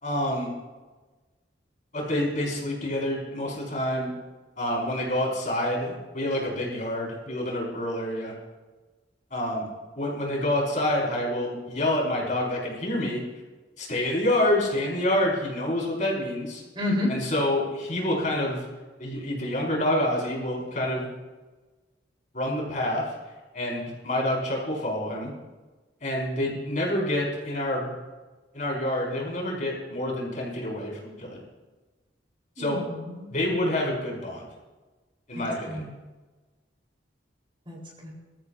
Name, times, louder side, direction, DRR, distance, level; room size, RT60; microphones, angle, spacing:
voice 1, 0.0-0.5 1.9-4.1 4.6-8.3 9.3-9.7 10.0-13.2 13.8-16.6 17.1-18.6 19.0-21.1 22.3-23.1 23.5-25.3 26.0-27.9 28.5-31.4 32.6-32.8 33.3-34.4 35.3-35.8, left 1 dB, 45° left, -3 dB, 5.1 m, -27 dB
voice 2, 16.7-17.1 32.6-33.3 35.3-35.9 37.7-38.1, left 1 dB, 30° right, -2 dB, 3.7 m, -31 dB
23.0 x 13.5 x 2.6 m, 1.2 s
head